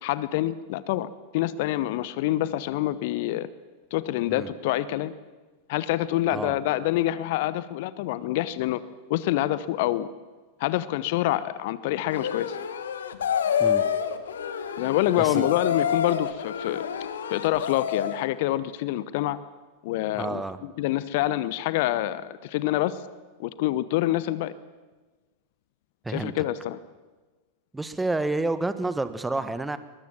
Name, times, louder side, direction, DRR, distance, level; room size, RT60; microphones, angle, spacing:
voice 1, 0.0-3.5 3.9-5.1 5.7-8.8 9.1-10.1 10.6-12.6 14.8-16.8 17.3-19.4 19.8-23.0 23.4-24.5 26.1-26.8, left 14 dB, 50° left, 16 dB, 0.9 m, -26 dB
sound 1, 12.1-18.3, left 8 dB, 65° left, 1.5 m, -28 dB
voice 2, 15.2-15.5 20.1-20.6 26.0-26.3 27.7-29.8, right 2 dB, 10° right, 12 dB, 1.3 m, -29 dB
22.5 x 21.5 x 7.4 m, 1.3 s
figure-of-eight pair, 90°, 0 cm